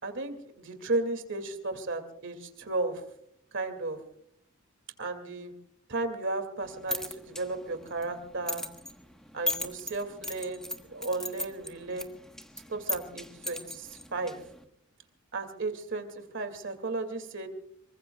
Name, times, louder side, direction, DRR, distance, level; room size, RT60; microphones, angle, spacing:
voice 1, 0.0-3.0 3.5-4.0 5.0-5.5 5.9-8.7 9.3-12.1 12.7-14.4 15.3-17.5, right 2 dB, 60° right, 8 dB, 2.4 m, -34 dB
sound 1, 6.6-14.6, left 1 dB, 5° left, 1.3 m, -39 dB
26.0 x 23.5 x 2.3 m, 0.69 s
head